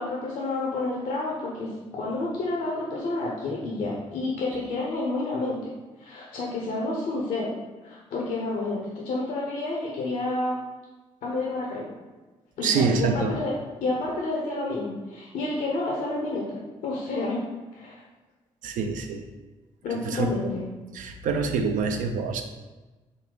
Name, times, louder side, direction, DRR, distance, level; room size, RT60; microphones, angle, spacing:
voice 1, 0.0-5.7 6.0-7.5 7.8-10.6 11.2-11.9 12.6-13.5 13.8-17.4 17.7-18.0 19.8-20.6, left 2 dB, 65° left, -3 dB, 0.7 m, -30 dB
voice 2, 12.6-13.3 18.6-19.2 19.9-20.3 20.9-22.4, right 5 dB, 65° right, 5 dB, 0.4 m, -26 dB
3.8 x 2.3 x 3.7 m, 1.2 s
hypercardioid pair, 40°, 15 cm